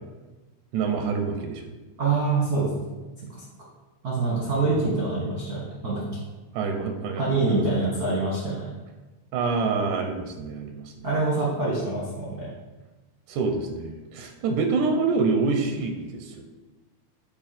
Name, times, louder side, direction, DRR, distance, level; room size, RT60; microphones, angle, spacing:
voice 1, 0.7-1.7 4.6-4.9 6.5-7.7 9.3-11.1 13.3-16.4, right 4 dB, 85° right, 5 dB, 2.1 m, -27 dB
voice 2, 2.0-2.7 4.0-6.0 7.1-8.6 11.0-12.5, right 3 dB, 55° right, -6 dB, 1.0 m, -25 dB
8.2 x 2.9 x 4.2 m, 1.2 s
omnidirectional pair, 3.4 m